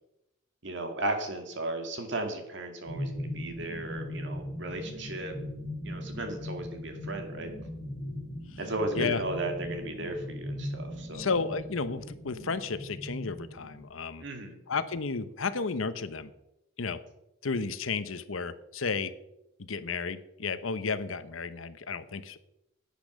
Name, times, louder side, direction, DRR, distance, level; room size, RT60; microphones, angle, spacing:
voice 1, 0.6-5.3 5.8-7.5 8.6-11.3 14.2-14.5, right 2 dB, 60° right, 5 dB, 2.2 m, -35 dB
sound 1, 2.9-13.9, left 1 dB, 65° left, 3.2 m, -39 dB
voice 2, 11.1-14.2 14.7-16.3 16.8-17.0 17.4-19.1 19.6-22.4, left 4 dB, 85° left, 13 dB, 0.9 m, -32 dB
10.5 x 8.3 x 6.3 m, 0.86 s
head